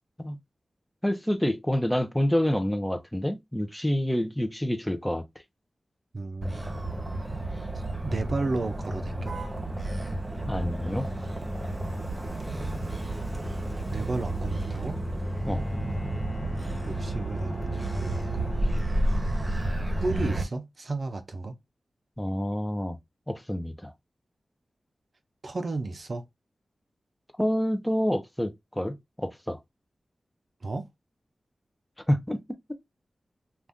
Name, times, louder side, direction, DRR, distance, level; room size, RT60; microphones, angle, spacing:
voice 1, 1.0-5.2 10.5-11.1 15.5-15.6 22.2-23.0 23.3-23.9 27.4-29.6 32.1-32.4, equal, 5° left, 0.6 m, -27 dB
voice 2, 6.1-6.7 8.0-9.4 13.9-15.0 16.9-19.5 20.0-21.5 25.4-26.2 30.6-30.9, right 2 dB, 55° right, 0.5 m, -33 dB
Motor vehicle (road), 6.4-20.4, right 1 dB, 30° right, 0.9 m, -31 dB
Bowed string instrument, 15.2-19.3, equal, 55° left, 1.0 m, -43 dB
2.6 x 2.4 x 3.5 m
cardioid pair, 60°, 0 cm